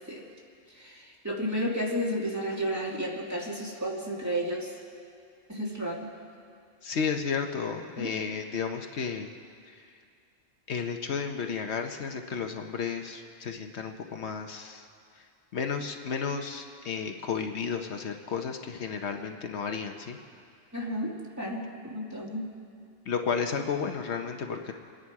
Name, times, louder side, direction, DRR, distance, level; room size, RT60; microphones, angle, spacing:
voice 1, 0.7-4.7 5.5-6.1 8.0-8.1 20.7-22.5, equal, 15° right, -4 dB, 2.1 m, -32 dB
voice 2, 6.8-9.3 9.7-9.9 10.7-14.9 15.2-15.3 15.5-20.2 23.0-24.7, left 6 dB, 70° left, 5 dB, 1.1 m, -33 dB
25.5 x 10.0 x 4.7 m, 2.4 s
omnidirectional pair, 1.2 m